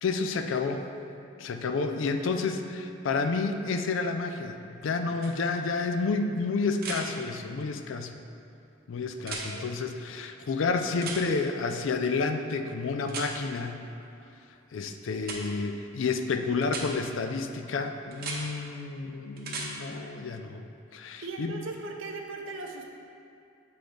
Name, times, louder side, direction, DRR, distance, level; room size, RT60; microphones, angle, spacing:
voice 1, 0.0-0.8 1.4-8.1 8.9-13.8 14.7-20.6 20.9-21.5, left 4 dB, 80° left, 7 dB, 0.4 m, -30 dB
sound 1, 5.2-5.3 6.8-7.0 9.2-9.5 11.0-11.2 13.1-13.3 15.2-15.4 16.6-16.9 18.1-18.4 19.4-19.7 21.7-21.8, right 4 dB, 50° right, 0.8 m, -35 dB
voice 2, 21.2-22.9, right 3 dB, 85° right, 2 dB, 0.6 m, -38 dB
7.6 x 3.9 x 3.4 m, 2.6 s
head